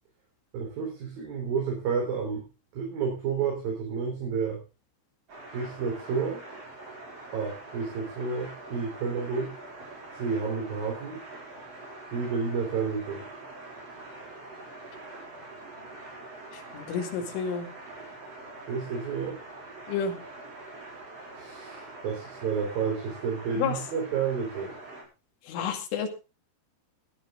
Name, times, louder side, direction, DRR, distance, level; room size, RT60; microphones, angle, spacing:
voice 1, 0.5-2.5 2.7-4.6 5.5-6.4 7.3-9.5 10.2-11.2 12.1-13.3 18.7-19.4 21.4-24.7, right 5 dB, 50° right, 0 dB, 5.4 m, -30 dB
sound 1, 5.3-25.0, right 2 dB, 30° right, 5.2 m, -44 dB
voice 2, 16.5-17.7 19.9-20.1 23.6-23.8 25.4-26.1, left 6 dB, 75° left, 3 dB, 4.8 m, -30 dB
16.5 x 12.0 x 3.8 m, 0.31 s
omnidirectional pair, 5.7 m